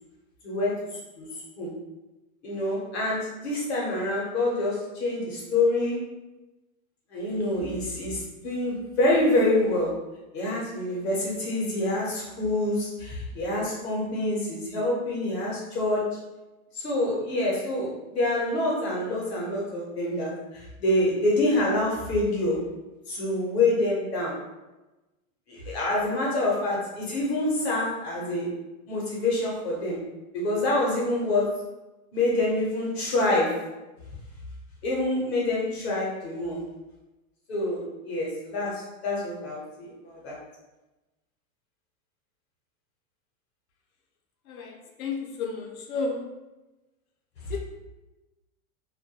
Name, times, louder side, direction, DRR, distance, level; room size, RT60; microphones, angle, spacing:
voice 1, 0.4-1.3 1.6-1.7 2.4-6.0 7.1-10.0 10.3-16.2 16.7-22.7 23.1-24.4 25.5-28.5 28.9-30.1 30.3-31.6 32.1-33.7 34.8-36.6 37.5-40.4 47.4-47.5, left 2 dB, 50° left, -4 dB, 0.7 m, -26 dB
voice 2, 44.5-46.3 47.5-47.6, left 4 dB, 85° left, 1 dB, 0.6 m, -32 dB
2.2 x 2.2 x 2.7 m, 1.1 s
supercardioid pair, 175°, 43 cm